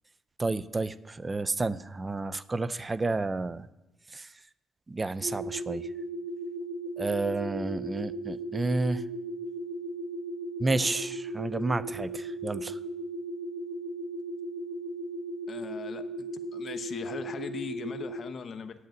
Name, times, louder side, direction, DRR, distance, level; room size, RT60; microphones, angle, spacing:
voice 1, 0.4-3.7 4.1-4.3 4.9-5.9 7.0-9.0 10.6-12.8, right 3 dB, 25° right, 15 dB, 0.6 m, -30 dB
sound 1, 5.2-18.2, right 2 dB, 50° right, 1.9 m, -37 dB
voice 2, 15.5-18.7, left 6 dB, 50° left, 8 dB, 0.9 m, -39 dB
9.7 x 8.0 x 9.0 m, 1.0 s
cardioid pair, 90°, 0 cm